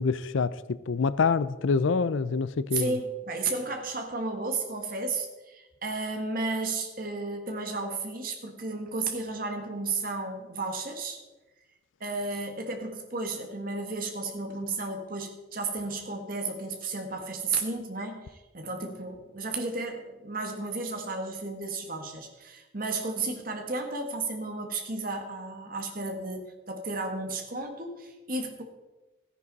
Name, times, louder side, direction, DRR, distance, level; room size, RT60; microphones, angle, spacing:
voice 1, 0.0-2.9, left 5 dB, 75° left, 16 dB, 0.5 m, -26 dB
voice 2, 2.7-11.2 12.0-28.6, right 3 dB, 45° right, 4 dB, 1.6 m, -33 dB
14.0 x 10.0 x 4.1 m, 1.1 s
head